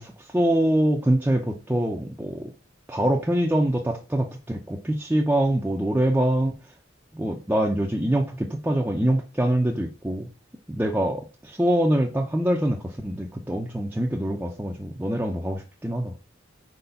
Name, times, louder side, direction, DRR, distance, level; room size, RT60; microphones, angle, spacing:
voice 1, 0.0-2.5 2.9-6.5 7.1-10.3 10.8-16.1, right 1 dB, 10° right, 0.5 m, -24 dB
4.4 x 4.0 x 5.6 m
head